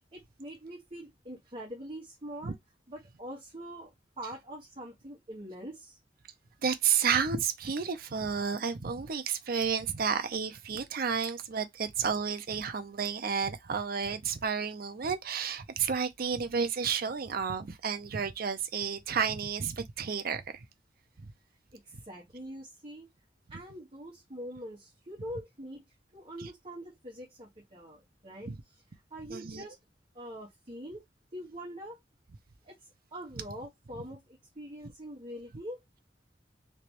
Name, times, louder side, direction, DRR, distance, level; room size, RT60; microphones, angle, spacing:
voice 1, 0.1-2.5 2.9-6.0 21.7-23.1 23.5-25.8 26.1-28.5 29.1-29.8 30.1-31.0 31.3-32.0 32.6-32.8 33.1-35.8, equal, 35° right, 1.3 m, -44 dB
voice 2, 6.6-20.7 21.2-21.3 26.4-26.5 28.5-28.6 29.3-29.6, right 6 dB, 55° right, 0.6 m, -31 dB
3.3 x 3.0 x 2.9 m
head